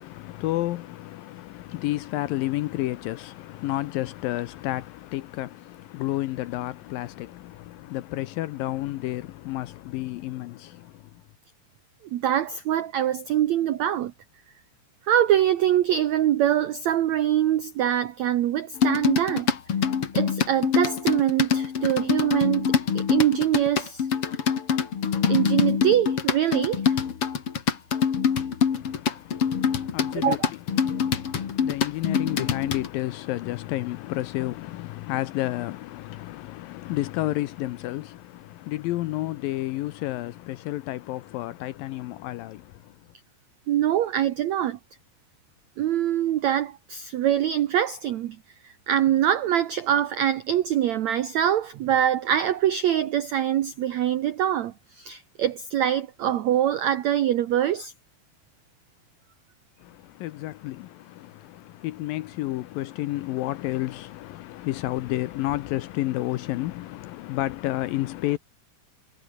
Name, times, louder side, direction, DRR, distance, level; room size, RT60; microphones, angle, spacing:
voice 1, 0.0-11.1 28.7-43.0 59.8-68.4, left 16 dB, 75° left, 2.2 m, -31 dB
voice 2, 12.1-14.1 15.1-19.5 20.1-24.1 25.3-27.0 30.1-30.5 43.7-44.8 45.8-48.4 48.6-57.9, right 11 dB, 85° right, 1.5 m, -24 dB
sound 1, 18.8-32.9, left 7 dB, 45° left, 2.4 m, -25 dB
omnidirectional pair, 4.7 m